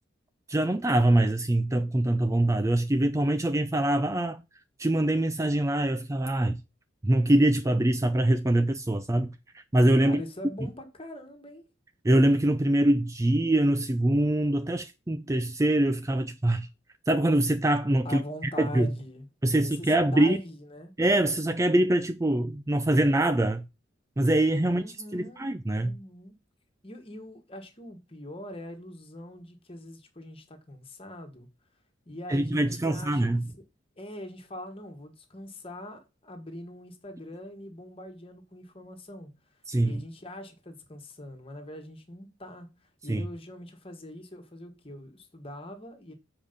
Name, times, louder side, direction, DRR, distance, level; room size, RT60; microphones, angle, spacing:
voice 1, 0.5-4.4 4.8-6.6 7.0-10.2 12.0-16.7 17.1-18.9 19.4-20.4 21.0-23.6 24.2-24.8 25.1-26.0 32.3-33.5 39.7-40.0 43.1-43.3, right 1 dB, 15° right, 0.4 m, -24 dB
voice 2, 10.0-11.7 18.0-19.3 19.6-20.9 24.6-26.3 26.8-31.5 32.0-33.6 34.0-39.3 39.8-46.1, left 1 dB, 30° left, 1.7 m, -43 dB
7.5 x 5.0 x 5.2 m
head